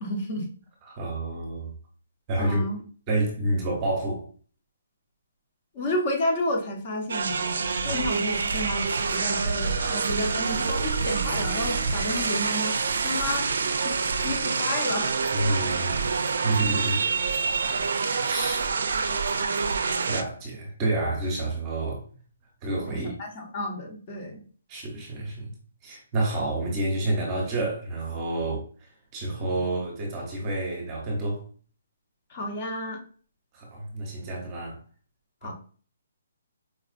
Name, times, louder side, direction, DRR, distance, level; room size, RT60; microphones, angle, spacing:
voice 1, 0.0-0.5 2.4-2.8 5.7-7.5 7.8-12.8 13.0-13.5 13.8-14.0 14.2-15.1 22.9-24.4 32.3-33.0 35.4-35.5, left 1 dB, 30° left, 0.8 m, -31 dB
voice 2, 0.9-1.7 2.3-2.6 3.1-4.3 7.8-8.0 15.3-17.1 18.2-18.6 19.8-22.0 22.6-23.2 24.7-25.5 25.8-28.6 29.1-31.4 33.5-34.8 35.4-35.5, right 2 dB, 20° right, 0.8 m, -29 dB
sound 1, 7.1-20.2, right 5 dB, 65° right, 0.4 m, -27 dB
4.4 x 2.3 x 2.5 m
hypercardioid pair, 175°, 0 cm